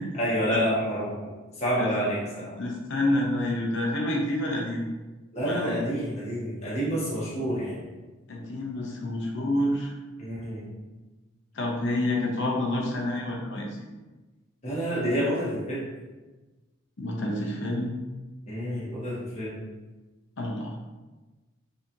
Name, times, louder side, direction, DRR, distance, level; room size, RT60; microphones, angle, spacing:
voice 1, 0.1-2.6 5.3-7.8 10.2-10.7 14.6-15.9 18.5-19.6, equal, 30° left, -7 dB, 1.2 m, -28 dB
voice 2, 2.6-4.8 5.5-5.8 8.3-9.9 11.5-13.9 17.0-17.9 20.4-20.7, left 1 dB, 60° left, -1 dB, 0.7 m, -28 dB
4.1 x 2.8 x 2.6 m, 1.2 s
head